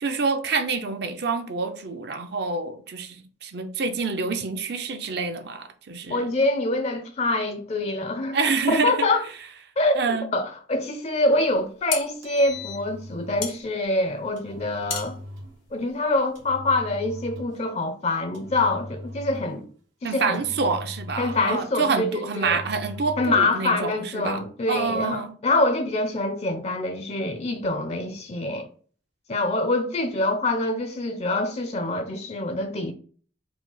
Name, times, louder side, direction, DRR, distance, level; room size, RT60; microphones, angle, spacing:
voice 1, 0.0-6.3 8.3-9.1 10.0-10.3 20.0-24.4 24.7-25.3, right 4 dB, 55° right, 0.5 m, -27 dB
voice 2, 6.1-8.4 8.7-9.2 9.8-15.2 15.7-19.7 20.0-20.4 21.2-22.6 23.2-28.7 29.3-32.9, left 2 dB, 35° left, 0.4 m, -25 dB
sound 1, 11.5-16.5, left 7 dB, 80° left, 0.9 m, -35 dB
Engine, 12.1-13.5 14.4-15.5 16.3-17.6 18.3-19.6 20.3-21.7 22.3-23.6, left 1 dB, 90° right, 1.1 m, -39 dB
4.8 x 2.0 x 3.9 m
head